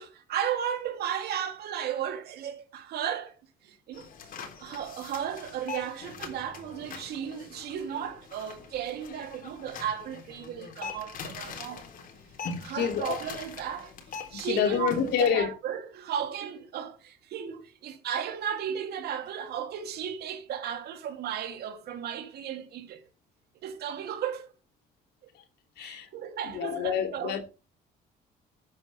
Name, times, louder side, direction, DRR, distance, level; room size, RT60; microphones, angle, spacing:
voice 1, 0.0-3.3 3.6-4.1 4.6-11.9 12.6-13.9 14.3-23.0 23.6-24.5 25.8-27.4, right 9 dB, 70° right, 2.7 m, -35 dB
sound 1, 3.9-15.3, left 5 dB, 55° left, 3.6 m, -43 dB
voice 2, 12.7-13.2 14.3-15.5 25.8-26.1 26.5-27.4, left 8 dB, 75° left, 2.6 m, -27 dB
12.5 x 9.6 x 3.3 m
cardioid pair, 110°, 17 cm